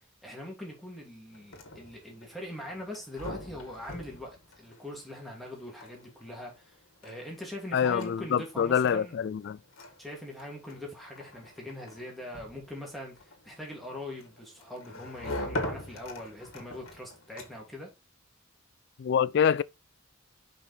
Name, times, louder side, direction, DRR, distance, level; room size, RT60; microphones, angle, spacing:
voice 1, 0.2-6.8 7.0-9.2 10.0-17.9, left 1 dB, ahead, 2.7 m, -42 dB
sound 1, 1.3-17.8, left 1 dB, 85° left, 1.8 m, -43 dB
voice 2, 7.7-9.6 19.0-19.6, left 7 dB, 55° left, 0.3 m, -26 dB
5.6 x 5.4 x 4.2 m
head